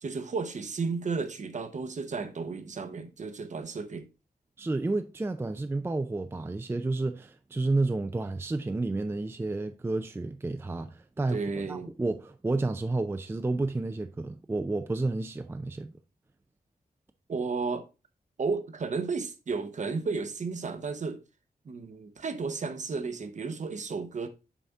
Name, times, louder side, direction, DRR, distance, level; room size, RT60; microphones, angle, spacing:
voice 1, 0.0-4.1 11.3-11.9 17.3-17.8 18.4-21.2 21.7-24.3, right 4 dB, 50° right, 0.8 m, -33 dB
voice 2, 4.6-15.9, right 2 dB, 15° right, 0.4 m, -31 dB
7.1 x 4.2 x 3.5 m
wide cardioid pair, 125°, 16 cm